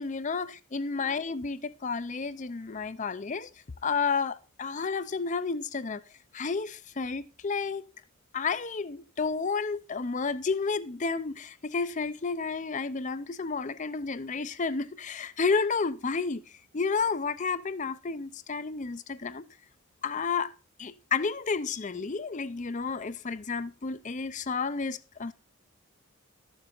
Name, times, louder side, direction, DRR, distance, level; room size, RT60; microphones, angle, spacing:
voice 1, 0.0-3.5 3.8-6.0 6.3-7.8 8.3-16.4 16.7-19.4 20.0-20.5 20.8-25.3, left 4 dB, 35° left, 0.5 m, -31 dB
13.0 x 7.2 x 3.9 m
head